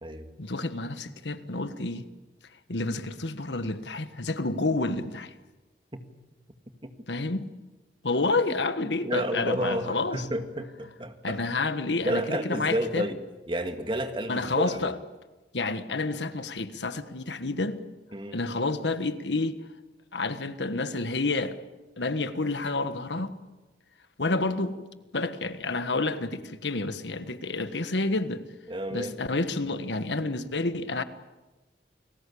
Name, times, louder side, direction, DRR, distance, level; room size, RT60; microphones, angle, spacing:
voice 1, 0.4-2.1 2.7-5.3 7.1-7.5 8.0-10.2 11.2-13.1 14.3-15.0 15.5-17.8 18.3-19.6 20.1-21.6 22.0-23.3 24.2-24.8 25.1-28.4 28.9-31.0, left 3 dB, 85° left, 1.5 m, -29 dB
voice 2, 8.5-11.4 12.0-14.9 18.1-18.4 28.7-29.1, right 1 dB, 30° right, 2.0 m, -31 dB
29.5 x 20.0 x 8.6 m
head